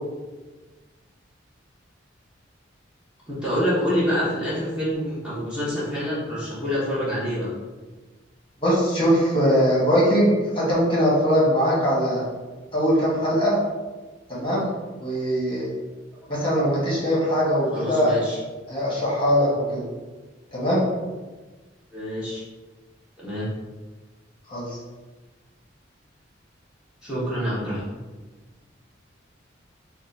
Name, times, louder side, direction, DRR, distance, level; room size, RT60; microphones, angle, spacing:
voice 1, 3.3-7.5 17.7-18.4 21.9-22.4 23.2-23.5 27.0-27.8, equal, 5° right, -10 dB, 0.9 m, -26 dB
voice 2, 8.6-12.2 12.7-13.6 14.3-14.7 15.0-15.7 16.3-18.1 18.7-19.8 20.5-20.9 24.5-24.7, equal, 25° left, -6 dB, 1.1 m, -21 dB
3.7 x 2.3 x 3.9 m, 1.3 s
head